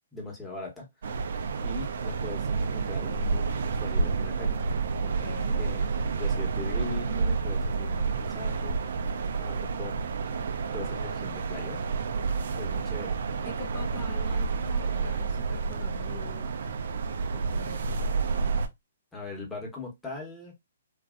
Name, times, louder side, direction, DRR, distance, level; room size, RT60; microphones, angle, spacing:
voice 1, 0.1-0.9 1.6-4.6 5.4-5.9 6.2-8.8 9.4-10.0 10.7-11.8 12.5-13.2 19.1-20.5, left 2 dB, 10° left, 1.1 m, -40 dB
sound 1, 1.0-18.7, right 4 dB, 65° right, 0.4 m, -29 dB
voice 2, 5.0-5.7 13.4-16.6 17.3-18.1, left 5 dB, 30° left, 0.8 m, -44 dB
3.0 x 2.6 x 2.4 m
hypercardioid pair, 130°, 0 cm